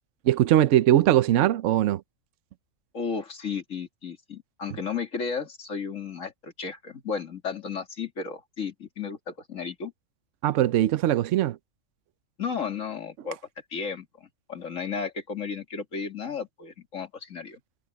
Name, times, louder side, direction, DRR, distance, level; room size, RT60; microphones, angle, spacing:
voice 1, 0.2-2.0 10.4-11.6, right 12 dB, 65° right, 1.0 m, -21 dB
voice 2, 2.9-9.9 12.4-13.4 13.7-17.6, left 5 dB, 65° left, 2.6 m, -34 dB
omnidirectional pair, 1.4 m